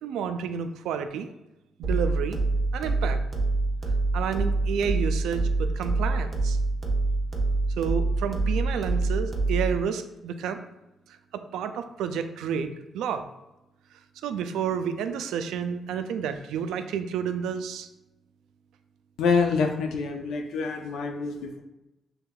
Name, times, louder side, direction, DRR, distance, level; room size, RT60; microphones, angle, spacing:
voice 1, 0.0-1.3 1.8-2.4 2.7-3.2 4.1-6.6 7.8-10.6 11.3-13.2 14.2-17.9, right 7 dB, 85° right, 8 dB, 0.3 m, -30 dB
sound 1, 1.8-9.8, right 2 dB, 40° right, 0.9 m, -26 dB
voice 2, 19.2-21.6, left 5 dB, 85° left, 4 dB, 0.6 m, -26 dB
5.7 x 3.4 x 2.3 m, 0.95 s
cardioid pair, 75°, 0 cm